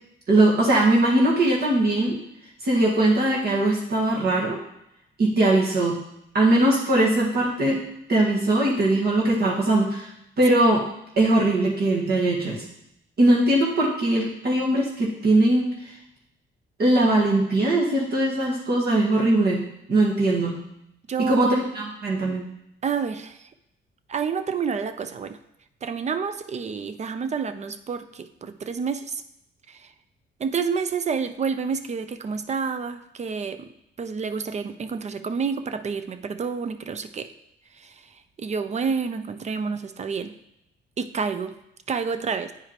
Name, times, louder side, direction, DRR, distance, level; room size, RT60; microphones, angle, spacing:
voice 1, 0.3-2.2 2.6-4.6 5.2-6.0 6.3-7.8 8.1-10.1 10.4-10.8 11.2-12.6 13.2-15.6 16.8-20.6 21.2-22.4, right 1 dB, 55° right, -4 dB, 1.6 m, -20 dB
voice 2, 22.8-23.5 24.1-25.4 25.8-29.2 29.7-29.9 30.4-33.7 34.0-37.3 37.8-37.9 38.4-40.3 41.0-41.5 41.9-42.5, right 5 dB, 35° right, 10 dB, 0.5 m, -29 dB
8.9 x 4.8 x 2.9 m, 0.80 s
cardioid pair, 90°, 20 cm